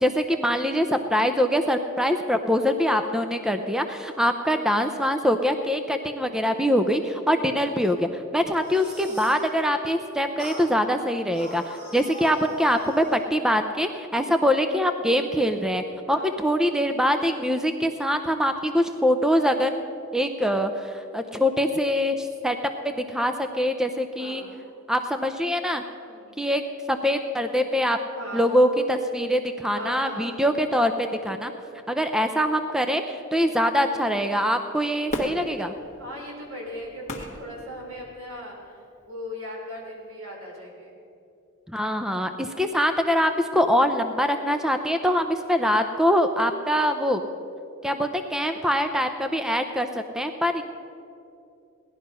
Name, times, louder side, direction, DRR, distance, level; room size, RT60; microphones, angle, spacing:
voice 1, 0.0-19.7 20.1-22.6 22.8-24.4 24.9-25.8 26.4-26.6 26.9-28.0 28.3-31.5 31.9-35.7 41.7-47.2 47.8-49.9 50.1-50.6, equal, 5° right, 7 dB, 0.5 m, -23 dB
sound 1, 8.5-9.5 10.4-10.7 11.3-13.2, equal, 55° right, 4.2 m, -41 dB
voice 2, 24.1-24.5 26.0-26.3 27.6-27.7 28.1-28.5 29.7-30.4 31.3-31.7 36.0-40.9, equal, 80° right, -1 dB, 3.8 m, -39 dB
Fireworks, 35.1-38.4 39.0-39.1, left 1 dB, 35° left, 1.5 m, -36 dB
17.5 x 11.5 x 5.5 m, 2.7 s
head